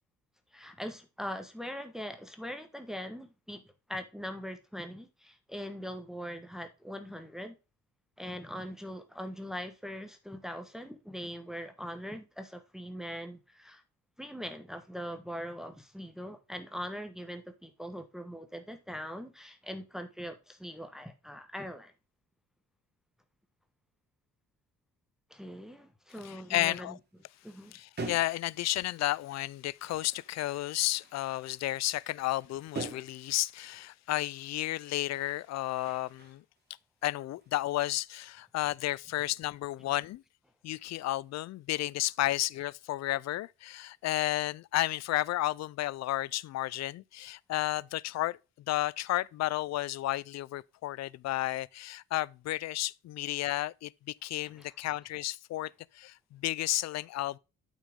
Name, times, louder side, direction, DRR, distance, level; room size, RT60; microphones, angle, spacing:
voice 1, 0.5-3.6 3.9-7.5 8.2-13.8 14.2-21.9 25.3-27.0 27.4-27.7 54.4-54.8, equal, ahead, 1.2 m, -41 dB
voice 2, 26.2-27.0 27.7-36.4 37.0-40.2 40.6-48.4 48.7-57.4, left 16 dB, 60° left, 0.4 m, -32 dB
sound 1, 26.7-26.8 27.2-29.5 29.8-33.5 34.4-34.6 34.8-36.7 37.0-37.9, right 3 dB, 35° right, 2.4 m, -46 dB
8.3 x 6.1 x 3.6 m
cardioid pair, 90°, 30 cm